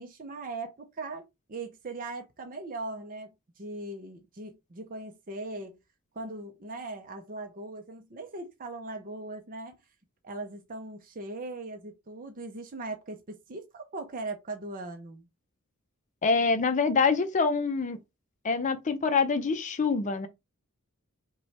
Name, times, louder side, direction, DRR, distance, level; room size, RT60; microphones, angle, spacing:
voice 1, 0.0-5.8 6.1-9.8 10.2-15.3, right 2 dB, 40° right, 0.6 m, -39 dB
voice 2, 16.2-18.0 18.4-20.3, left 4 dB, 35° left, 0.5 m, -25 dB
5.3 x 2.3 x 3.2 m
head